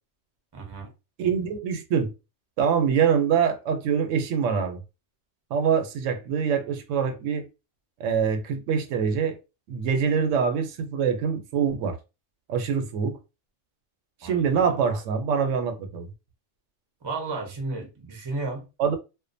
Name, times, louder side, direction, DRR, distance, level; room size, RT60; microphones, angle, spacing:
voice 1, 0.5-0.9 14.2-14.4 17.0-18.7, right 3 dB, 30° right, 0.5 m, -33 dB
voice 2, 1.2-2.1 2.6-4.8 5.5-7.5 8.0-9.4 9.7-12.0 12.5-13.2 14.2-16.1 18.8-19.0, right 7 dB, 85° right, 0.9 m, -24 dB
2.4 x 2.1 x 2.5 m
omnidirectional pair, 1.3 m